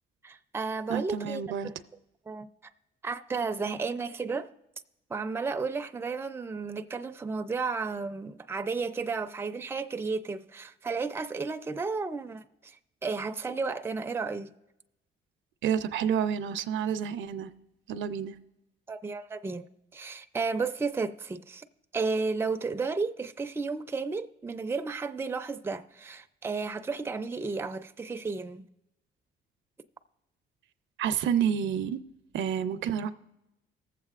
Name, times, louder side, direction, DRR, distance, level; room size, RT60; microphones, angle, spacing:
voice 1, 0.2-1.7 2.3-2.5 3.0-4.5 5.1-12.8 13.0-14.5 18.9-19.7 19.9-21.6 21.9-28.6, right 4 dB, 10° right, 0.4 m, -33 dB
voice 2, 0.9-1.7 15.6-17.5 17.9-18.4 31.0-32.0 32.3-33.1, right 8 dB, 75° right, 0.5 m, -29 dB
19.5 x 7.4 x 2.4 m
cardioid pair, 90°, 20 cm